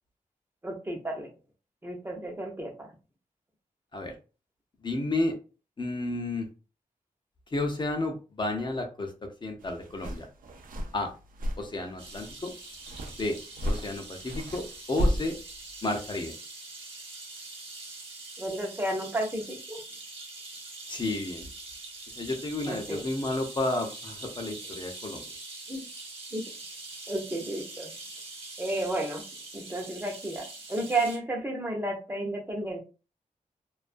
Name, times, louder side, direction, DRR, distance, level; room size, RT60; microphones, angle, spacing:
voice 1, 0.6-1.3 1.8-2.9 18.4-19.8 22.7-23.0 25.7-25.8 26.3-26.4 27.1-27.9 28.6-29.2 29.5-32.8, right 1 dB, 15° right, 1 dB, 0.6 m, -32 dB
voice 2, 4.8-5.3 5.8-6.5 7.5-9.1 9.4-10.3 10.9-11.1 11.6-12.5 13.2-13.4 13.6-15.4 15.8-16.4 20.9-21.5 22.2-25.2, left 2 dB, 35° left, 3 dB, 0.5 m, -31 dB
sound 1, 9.6-16.2, equal, 85° right, 0.4 m, -34 dB
sound 2, 12.0-31.2, right 2 dB, 40° right, 1.1 m, -44 dB
2.3 x 2.3 x 2.5 m, 0.33 s
wide cardioid pair, 120°, 14 cm